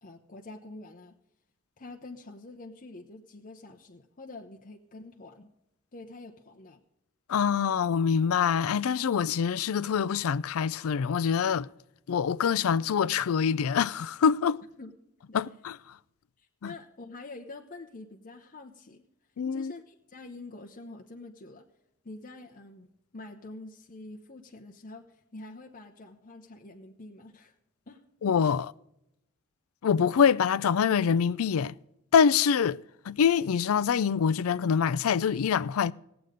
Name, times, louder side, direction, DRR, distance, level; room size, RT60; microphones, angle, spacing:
voice 1, 0.0-1.2 1.8-5.5 5.9-6.8 14.8-14.9 15.3-15.4 16.4-19.0 19.5-21.6 22.0-22.9 23.1-27.5 27.9-28.0, left 2 dB, 40° left, 0.9 m, -46 dB
voice 2, 7.3-11.7 12.1-14.6 15.3-15.8 16.6-16.7 19.4-19.7 28.2-28.7 29.8-31.7 32.1-32.8 33.1-35.9, left 7 dB, 70° left, 0.4 m, -25 dB
18.0 x 8.0 x 5.0 m
head